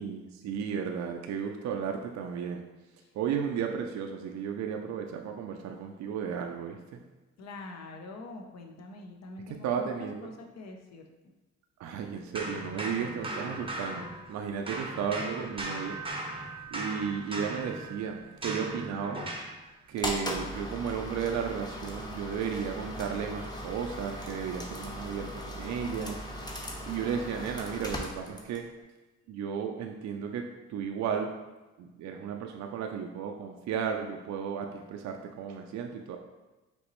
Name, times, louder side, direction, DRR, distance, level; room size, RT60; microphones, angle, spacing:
voice 1, 0.0-2.6 3.1-7.0 9.5-10.1 11.8-16.0 16.7-19.2 19.9-26.2 26.9-28.7 29.3-31.3 31.8-36.2, right 7 dB, 65° right, 3 dB, 0.5 m, -34 dB
voice 2, 7.4-11.1, left 2 dB, 60° left, 3 dB, 0.8 m, -44 dB
sound 1, 12.3-14.4 14.7-19.6, right 1 dB, 20° right, 0.7 m, -38 dB
sound 2, 20.0-28.7, equal, 15° left, 0.7 m, -38 dB
5.2 x 3.0 x 3.0 m, 1.1 s
cardioid pair, 90°, 30 cm